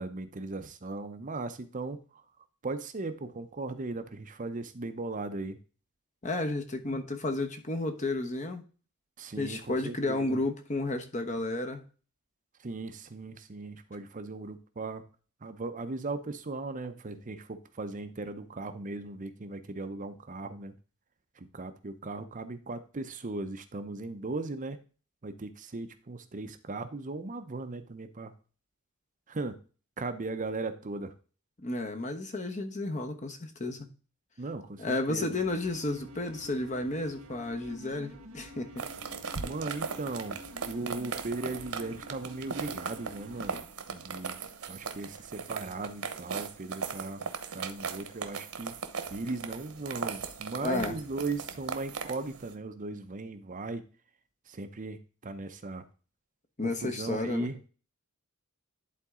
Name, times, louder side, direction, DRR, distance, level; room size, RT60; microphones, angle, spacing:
voice 1, 0.0-2.2 2.6-5.6 9.2-10.4 12.6-15.0 15.4-20.7 21.4-24.8 25.2-28.3 29.3-29.6 30.0-31.1 34.4-35.4 39.4-47.2 47.5-48.7 49.1-53.8 54.5-55.8 56.6-57.7, right 3 dB, 35° right, 0.6 m, -38 dB
voice 2, 6.2-8.6 9.4-11.8 31.6-33.9 34.8-38.8 50.6-51.0 56.6-57.5, left 2 dB, 35° left, 1.1 m, -32 dB
sound 1, 35.4-43.6, equal, 75° right, 1.7 m, -49 dB
sound 2, 38.8-52.5, right 5 dB, 90° right, 0.9 m, -38 dB
11.0 x 4.0 x 3.6 m
head